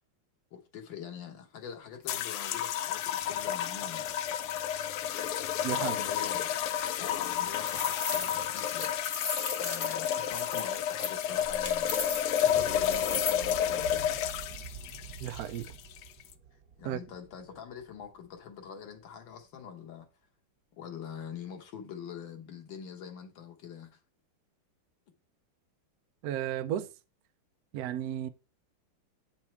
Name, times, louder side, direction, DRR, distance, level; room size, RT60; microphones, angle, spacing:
voice 1, 0.5-4.1 5.8-6.6 7.0-8.9 9.5-12.0 12.5-14.2 16.8-20.1 20.7-24.0, left 7 dB, 65° left, 1.8 m, -44 dB
sound 1, 2.1-16.3, left 10 dB, 90° left, 1.5 m, -31 dB
voice 2, 5.6-5.9 15.2-15.7 16.8-17.0 26.2-26.9 27.7-28.3, right 11 dB, 80° right, 0.8 m, -33 dB
sound 2, 7.2-13.5, left 4 dB, 40° left, 1.2 m, -37 dB
sound 3, 12.3-18.7, right 5 dB, 55° right, 1.8 m, -46 dB
8.4 x 4.6 x 4.4 m
omnidirectional pair, 2.3 m